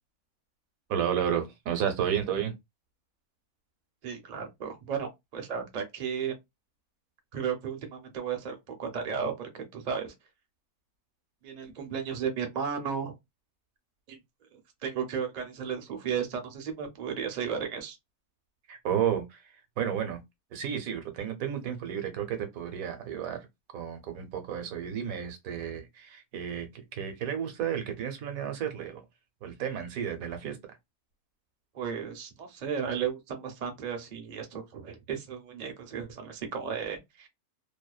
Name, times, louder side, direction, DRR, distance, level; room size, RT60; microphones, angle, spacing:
voice 1, 0.9-2.5 18.7-20.2 20.5-23.5 23.7-29.0 29.4-30.6, right 9 dB, 75° right, 1.0 m, -32 dB
voice 2, 4.0-6.4 7.3-10.1 11.4-13.1 14.1-14.2 14.5-18.0 31.7-37.3, right 7 dB, 50° right, 0.5 m, -34 dB
2.7 x 2.1 x 2.3 m
omnidirectional pair, 1.6 m